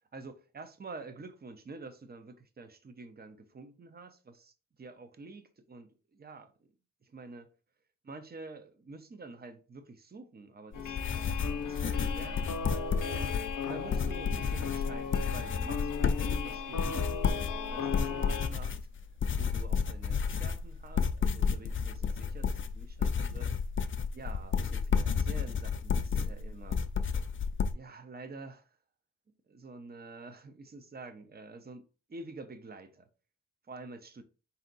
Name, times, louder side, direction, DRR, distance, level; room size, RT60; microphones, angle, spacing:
voice 1, 0.1-6.5 7.0-7.5 8.0-12.5 13.0-18.8 19.4-23.5 24.1-26.8 27.7-28.7 29.3-33.1 33.7-34.2, right 3 dB, 30° right, 0.6 m, -48 dB
sound 1, 10.7-18.5, left 6 dB, 85° left, 0.7 m, -37 dB
sound 2, 10.7-27.7, left 6 dB, 40° left, 0.4 m, -31 dB
4.4 x 2.8 x 3.8 m
wide cardioid pair, 110°, 31 cm